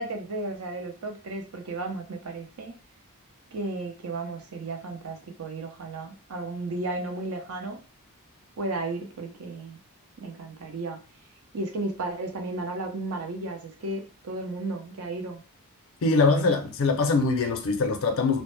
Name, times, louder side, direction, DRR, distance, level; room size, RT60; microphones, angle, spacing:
voice 1, 0.0-2.7 3.5-7.8 8.6-9.8 10.2-11.0 11.5-15.4 16.2-16.6, right 2 dB, 70° right, 0.6 m, -34 dB
voice 2, 16.0-18.4, left 3 dB, 65° left, 0.4 m, -23 dB
2.1 x 2.0 x 3.0 m
head